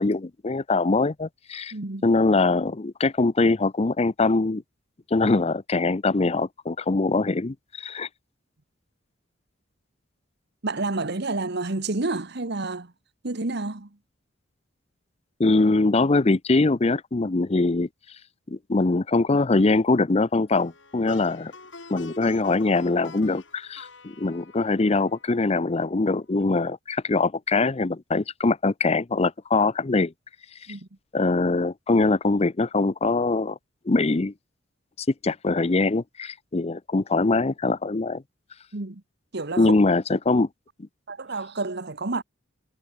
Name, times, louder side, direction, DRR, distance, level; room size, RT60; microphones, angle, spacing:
voice 1, 0.0-1.7 2.0-4.6 5.1-8.1 15.4-17.9 18.5-21.5 21.9-30.1 31.1-33.6 33.9-34.3 35.2-38.2 39.6-40.5 40.8-40.9, left 3 dB, 30° left, 0.6 m, -23 dB
voice 2, 1.7-2.1 10.6-12.9 13.2-13.9 30.7-30.9 38.7-39.0 39.3-39.7 41.1-42.2, right 3 dB, 60° right, 1.4 m, -29 dB
Plucked string instrument, 20.5-25.8, left 3 dB, 65° left, 5.0 m, -46 dB
head